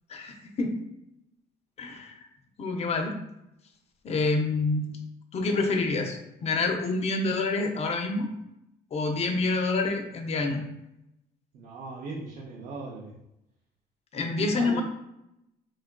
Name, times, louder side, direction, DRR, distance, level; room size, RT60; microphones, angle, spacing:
voice 1, 0.1-0.8 1.8-2.3 2.6-3.2 4.0-4.8 5.3-8.3 8.9-10.7 14.1-14.8, left 3 dB, 40° left, 4 dB, 0.5 m, -27 dB
voice 2, 11.5-13.2 14.3-14.8, right 3 dB, 60° right, -3 dB, 0.6 m, -38 dB
3.4 x 2.4 x 2.2 m, 0.85 s
cardioid pair, 110°, 17 cm